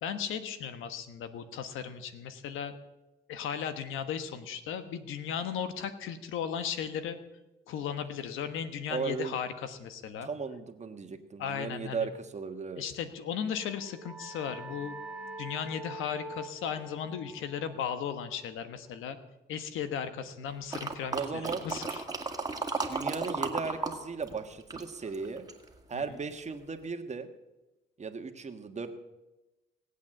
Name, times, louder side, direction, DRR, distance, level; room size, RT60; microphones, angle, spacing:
voice 1, 0.0-2.8 3.3-7.2 7.7-10.3 11.4-12.1 12.8-15.0 15.4-19.2 19.5-22.0 25.9-26.0, left 8 dB, 85° left, 10 dB, 1.3 m, -36 dB
voice 2, 8.9-9.3 10.2-12.8 21.1-21.6 22.9-25.5 25.9-27.3 28.0-28.9, right 5 dB, 35° right, 7 dB, 1.5 m, -36 dB
sound 1, 13.4-18.8, right 2 dB, 5° right, 1.8 m, -45 dB
sound 2, 20.7-24.0 24.2-25.7 26.2-26.3, right 3 dB, 20° right, 2.1 m, -34 dB
18.5 x 8.3 x 7.7 m, 1.0 s
cardioid pair, 90°, 20 cm